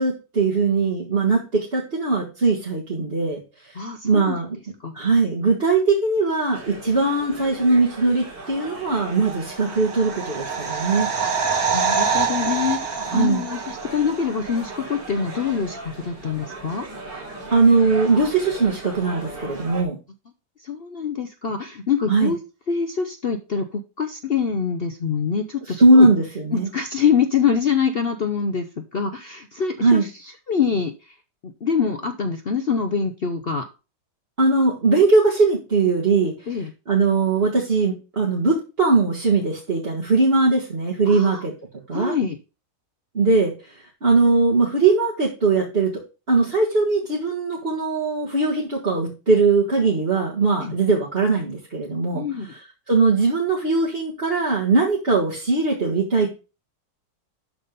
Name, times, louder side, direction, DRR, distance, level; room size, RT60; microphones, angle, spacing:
voice 1, 0.0-3.4 4.0-4.5 4.9-11.1 13.1-13.4 17.5-20.0 22.1-22.3 25.8-26.7 29.8-30.0 34.4-36.3 36.9-41.5 41.9-42.1 43.1-43.5 44.0-45.9 46.3-52.6 52.9-56.3, right 3 dB, 35° right, -3 dB, 2.0 m, -20 dB
voice 2, 3.7-4.4 4.8-4.9 6.8-6.9 11.2-11.3 11.7-16.9 20.6-22.4 22.7-26.1 26.5-30.1 30.5-31.1 31.4-33.7 36.5-36.7 41.1-41.5 41.9-42.4 50.6-50.7 52.1-52.5, left 6 dB, 55° left, 8 dB, 0.6 m, -25 dB
sound 1, 6.5-19.8, right 2 dB, 75° right, 3.5 m, -38 dB
sound 2, 9.4-14.2 14.5-14.6, right 6 dB, 55° right, 2.1 m, -25 dB
12.0 x 4.2 x 5.3 m, 0.31 s
omnidirectional pair, 2.0 m